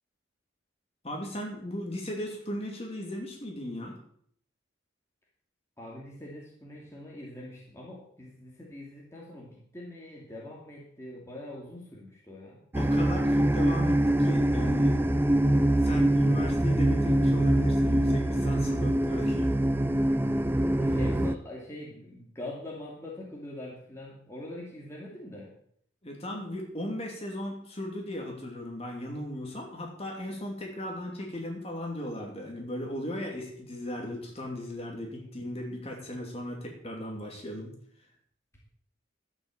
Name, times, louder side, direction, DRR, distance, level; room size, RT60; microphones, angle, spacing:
voice 1, 1.0-4.0 12.8-15.2 15.8-19.5 26.0-37.7, left 1 dB, 30° left, 0 dB, 2.8 m, -36 dB
voice 2, 5.8-12.6 20.8-25.5 35.4-35.6, left 1 dB, 15° left, -4 dB, 2.5 m, -43 dB
sound 1, 12.7-21.3, right 1 dB, 10° right, 0.5 m, -24 dB
12.0 x 8.2 x 7.7 m, 0.64 s
head